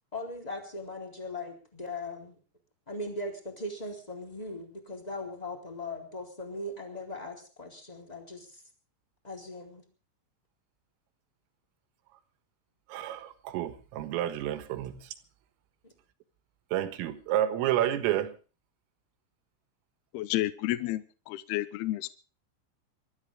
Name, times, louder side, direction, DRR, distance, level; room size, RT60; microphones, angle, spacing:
voice 1, 0.1-2.4 2.9-8.6 9.2-9.8 15.8-15.9, left 2 dB, 10° left, 3.0 m, -39 dB
voice 2, 12.9-15.1 16.7-18.4, right 12 dB, 85° right, 4.1 m, -30 dB
voice 3, 20.1-22.1, left 15 dB, 75° left, 2.4 m, -31 dB
25.5 x 13.0 x 3.6 m
omnidirectional pair, 5.8 m